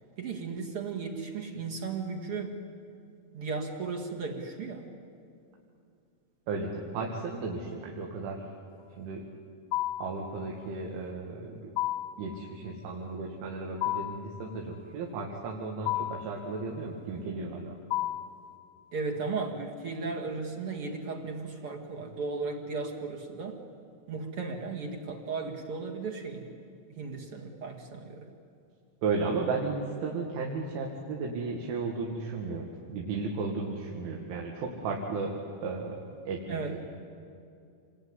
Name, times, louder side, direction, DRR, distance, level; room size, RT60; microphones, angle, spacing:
voice 1, 0.2-2.6 3.3-4.9 18.9-23.6 24.1-26.5 26.9-28.3 36.5-36.7, right 4 dB, 50° right, 1 dB, 1.7 m, -35 dB
voice 2, 6.5-8.5 9.0-9.3 10.0-11.7 12.2-17.7 29.0-36.0 36.3-36.8, right 4 dB, 90° right, -1 dB, 4.4 m, -34 dB
sound 1, 9.7-10.2 11.8-12.3 13.8-14.3 15.9-16.3 17.9-18.4, left 15 dB, 75° left, 2.1 m, -31 dB
28.0 x 21.5 x 9.7 m, 2.5 s
omnidirectional pair, 5.3 m